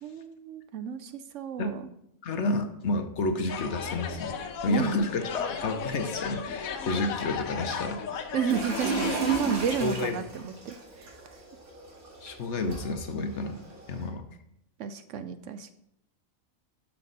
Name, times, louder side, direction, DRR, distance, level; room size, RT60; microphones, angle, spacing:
voice 1, 0.0-1.8 4.7-5.0 8.3-11.1 14.8-15.7, right 7 dB, 70° right, 11 dB, 0.9 m, -32 dB
voice 2, 2.2-4.3 4.6-8.0 9.8-10.2 12.2-13.6 13.9-14.2, left 2 dB, 60° left, 7 dB, 1.1 m, -30 dB
sound 1, 3.5-9.4, left 6 dB, 85° left, 1.3 m, -36 dB
sound 2, 8.5-14.1, right 3 dB, 85° right, 2.6 m, -34 dB
11.5 x 6.0 x 4.0 m, 0.75 s
omnidirectional pair, 1.5 m